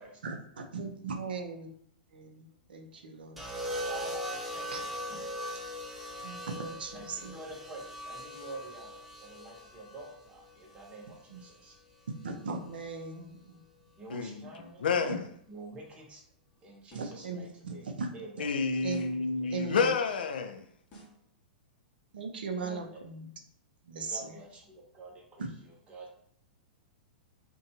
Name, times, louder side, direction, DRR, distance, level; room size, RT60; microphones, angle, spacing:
voice 1, 0.2-1.7 2.1-3.4 4.7-4.8 6.2-7.3 11.3-11.4 12.2-13.6 16.9-18.1 18.8-19.0 19.5-19.9 22.1-23.3 23.8-24.4 25.4-25.5, right 4 dB, 80° right, 0.4 m, -38 dB
sound 1, 3.4-11.5 12.7-13.1, equal, 5° right, 0.5 m, -40 dB
voice 2, 3.9-4.7 6.9-11.7 14.0-14.8 15.5-16.2 16.6-17.9 18.1-18.5 22.6-23.0 24.1-25.4 25.9-26.1, right 2 dB, 25° right, 0.8 m, -47 dB
voice 3, 14.1-15.3 18.4-20.7, left 5 dB, 75° left, 0.3 m, -30 dB
sound 2, 14.9-15.3 16.9-17.3 18.9-19.3 20.9-21.3, right 2 dB, 35° left, 0.8 m, -53 dB
2.6 x 2.2 x 2.8 m
hypercardioid pair, 110°, 5 cm